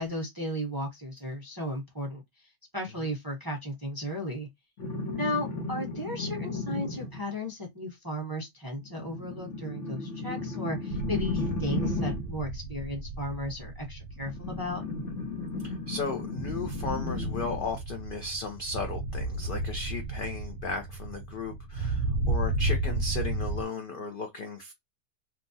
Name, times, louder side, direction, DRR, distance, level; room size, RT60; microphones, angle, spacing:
voice 1, 0.0-2.2 2.7-4.5 5.1-14.8, equal, 25° right, 0.5 m, -35 dB
sound 1, 4.8-7.3 8.8-12.4 14.2-17.7 19.4-19.5, left 3 dB, 55° left, 1.0 m, -35 dB
sound 2, 10.9-23.6, right 2 dB, 75° right, 1.0 m, -33 dB
voice 2, 15.6-24.7, left 3 dB, 75° left, 0.4 m, -35 dB
2.9 x 2.3 x 2.6 m
omnidirectional pair, 1.7 m